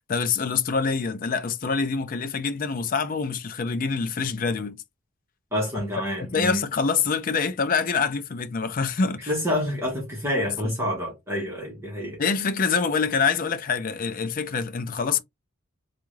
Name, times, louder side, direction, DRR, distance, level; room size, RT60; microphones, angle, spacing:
voice 1, 0.1-4.8 6.3-9.3 10.4-10.5 12.2-15.2, left 5 dB, 40° left, 0.4 m, -25 dB
voice 2, 5.5-6.6 9.3-12.2, left 1 dB, 10° right, 1.3 m, -28 dB
3.6 x 2.4 x 3.1 m
head